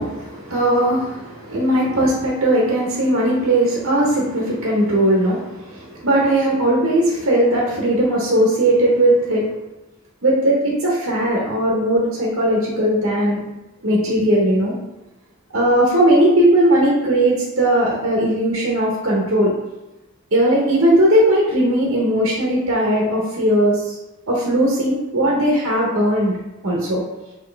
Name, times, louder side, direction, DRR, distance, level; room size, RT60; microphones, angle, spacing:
voice 1, 0.0-9.5 10.2-13.5 13.8-14.7 15.5-19.5 20.3-23.9 24.3-26.3 26.6-27.0, right 1 dB, 60° right, -4 dB, 0.9 m, -18 dB
4.3 x 3.0 x 3.3 m, 1.0 s
head